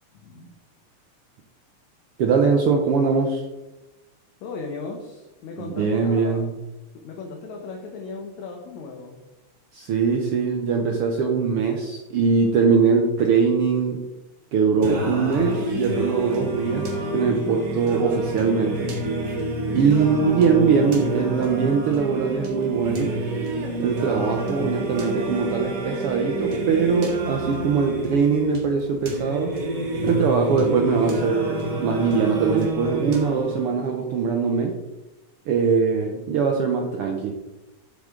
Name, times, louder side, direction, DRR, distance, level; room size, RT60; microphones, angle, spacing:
voice 1, 0.1-0.5 4.4-6.4 7.0-9.2, left 3 dB, 70° left, 1 dB, 2.3 m, -36 dB
voice 2, 2.2-3.4 5.7-6.5 9.7-14.0 14.5-18.9 19.7-23.2 23.8-29.5 30.0-34.7 35.5-37.3, right 5 dB, 70° right, 3 dB, 1.4 m, -22 dB
Singing, 14.8-33.8, right 1 dB, 40° right, 2.0 m, -28 dB
9.7 x 7.6 x 3.7 m, 1.0 s
omnidirectional pair, 3.4 m